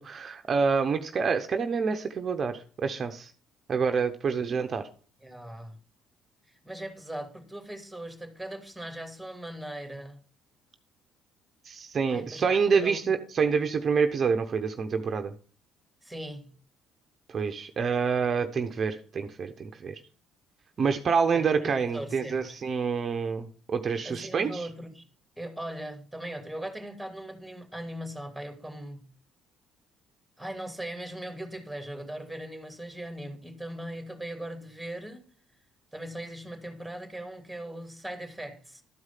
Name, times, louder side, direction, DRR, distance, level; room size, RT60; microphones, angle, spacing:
voice 1, 0.0-3.3 3.7-4.8 11.6-15.3 17.3-20.0 20.8-24.7, right 5 dB, 45° right, 0.8 m, -27 dB
voice 2, 5.2-5.8 6.6-10.2 12.1-13.1 16.0-16.6 21.3-22.6 24.0-25.1 25.4-29.1 30.4-35.3 35.9-38.8, right 1 dB, ahead, 2.5 m, -39 dB
12.5 x 4.8 x 5.7 m
supercardioid pair, 70°, 0 cm